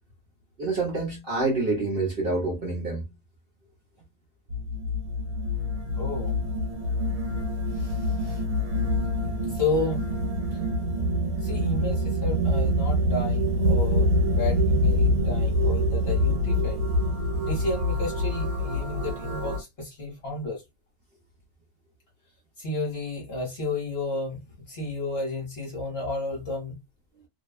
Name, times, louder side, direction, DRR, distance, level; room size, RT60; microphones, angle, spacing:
voice 1, 0.6-3.1, right 3 dB, 45° right, 0.9 m, -27 dB
sound 1, 4.5-19.6, left 1 dB, 75° right, 1.2 m, -25 dB
voice 2, 5.9-6.3 7.7-8.4 9.5-10.0 11.4-16.9 17.4-20.6 22.6-26.8, left 2 dB, 45° left, 1.1 m, -32 dB
2.8 x 2.3 x 2.3 m
omnidirectional pair, 1.6 m